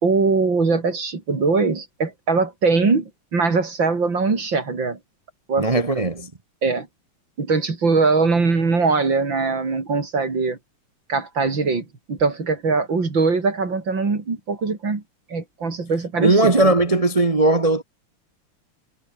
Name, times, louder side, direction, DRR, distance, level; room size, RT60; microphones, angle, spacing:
voice 1, 0.0-5.0 5.5-5.7 6.0-6.1 6.6-6.9 7.4-10.6 11.1-15.0 15.3-16.7, right 4 dB, 60° right, 4.5 m, -21 dB
voice 2, 5.6-6.3 16.2-17.8, right 2 dB, 40° right, 0.5 m, -18 dB
omnidirectional pair, 2.4 m